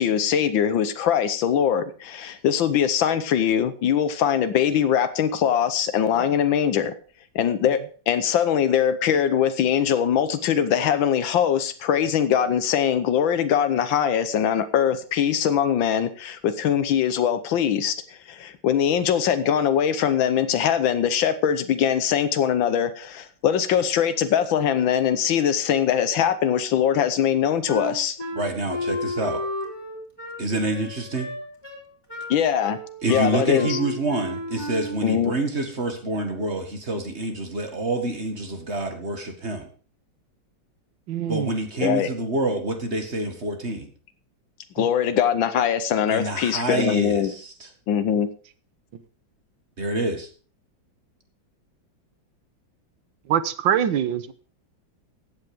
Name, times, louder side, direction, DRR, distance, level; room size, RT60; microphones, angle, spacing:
voice 1, 0.0-6.9 7.3-28.2 32.3-32.8 33.1-33.8 35.0-35.3 41.8-42.1 44.8-47.3 47.9-48.3, left 9 dB, 85° left, 1.7 m, -22 dB
Wind instrument woodwind instrument, 27.7-35.1, left 2 dB, 10° left, 3.3 m, -32 dB
voice 2, 28.4-29.4 30.4-31.3 33.0-39.7 41.3-43.9 46.1-47.7 49.8-50.3, right 2 dB, 35° right, 2.1 m, -27 dB
voice 3, 41.1-41.5 44.8-44.9 53.3-54.3, right 9 dB, 80° right, 1.7 m, -24 dB
15.0 x 8.9 x 5.0 m
omnidirectional pair, 2.0 m